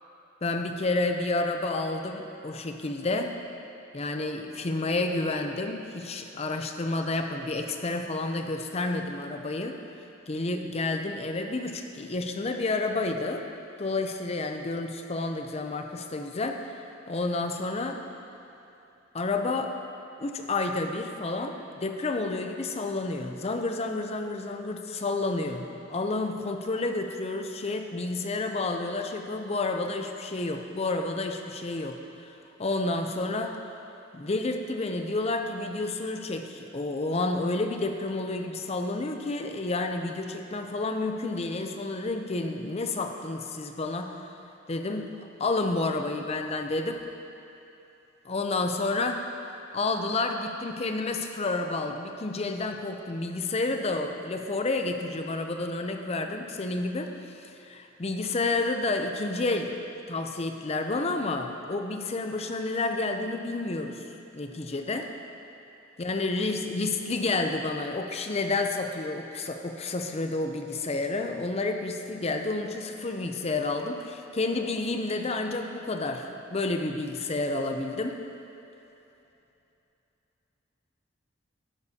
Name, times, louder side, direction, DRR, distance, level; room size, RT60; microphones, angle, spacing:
voice 1, 0.4-3.3 3.9-9.8 10.3-13.4 13.8-18.0 19.1-19.7 20.2-32.0 32.6-33.6 34.1-44.2 44.7-45.1 45.4-47.0 48.3-49.2 49.7-59.7 60.1-64.0 64.3-65.1 66.0-78.2, left 2 dB, 30° left, 5 dB, 0.5 m, -30 dB
12.0 x 9.4 x 2.8 m, 2.9 s
head